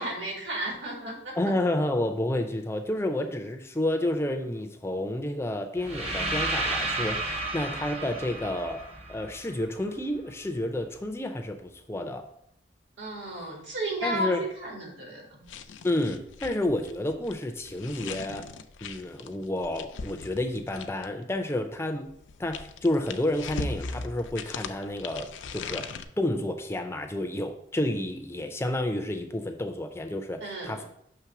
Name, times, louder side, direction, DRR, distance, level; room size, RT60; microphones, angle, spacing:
voice 1, 0.0-1.3 13.0-15.5 30.4-30.8, right 1 dB, 80° right, -2 dB, 2.2 m, -33 dB
voice 2, 1.4-12.3 14.0-14.5 15.8-18.5 18.8-22.1 22.4-30.8, left 1 dB, 15° left, 5 dB, 0.4 m, -30 dB
sound 1, 5.8-9.8, right 2 dB, 35° right, 0.7 m, -32 dB
sound 2, 15.4-21.2 22.1-26.0, left 4 dB, 90° left, 0.4 m, -39 dB
6.0 x 3.2 x 5.8 m, 0.70 s
head